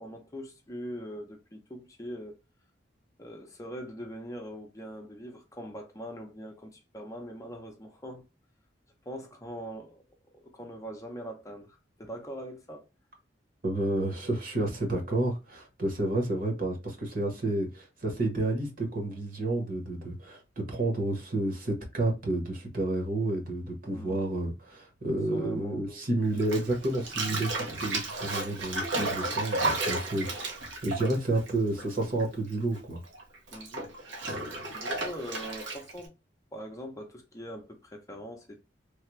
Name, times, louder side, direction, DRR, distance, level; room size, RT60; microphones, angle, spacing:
voice 1, 0.0-2.4 3.2-8.2 9.1-10.0 10.3-12.9 23.9-24.2 25.3-26.0 33.5-33.9 34.7-36.1 36.5-38.6, equal, 20° left, 0.6 m, -42 dB
voice 2, 13.6-33.0, right 2 dB, 50° right, 1.2 m, -30 dB
Bathtub (filling or washing), 26.4-32.2 32.5-36.1, right 2 dB, 90° right, 1.1 m, -33 dB
3.3 x 2.3 x 3.0 m
head